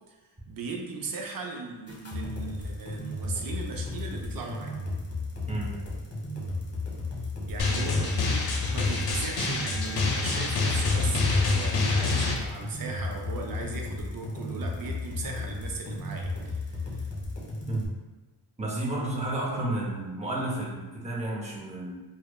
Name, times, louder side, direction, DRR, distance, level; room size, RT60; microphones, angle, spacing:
voice 1, 0.5-4.7 7.5-17.1, right 4 dB, 55° right, 1 dB, 0.5 m, -38 dB
sound 1, 1.9-17.9, left 2 dB, 35° left, 0.8 m, -34 dB
Drum, 7.6-12.3, left 3 dB, 60° left, 0.6 m, -26 dB
voice 2, 18.6-22.0, right 1 dB, 15° right, -4 dB, 0.7 m, -31 dB
3.0 x 2.0 x 2.2 m, 1.2 s
cardioid pair, 65°, 43 cm